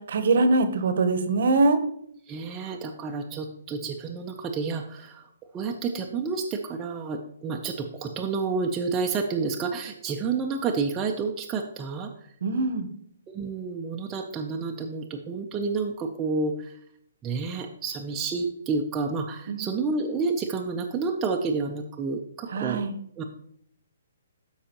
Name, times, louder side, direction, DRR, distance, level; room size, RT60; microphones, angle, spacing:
voice 1, 0.0-1.8 12.4-12.9 19.5-19.7 22.5-23.0, right 3 dB, 55° right, 10 dB, 0.9 m, -23 dB
voice 2, 2.2-12.1 13.3-16.8 17.2-22.8 23.2-23.3, right 4 dB, 15° right, 1 dB, 0.5 m, -30 dB
12.5 x 4.8 x 2.9 m, 0.68 s
hypercardioid pair, 165°, 0 cm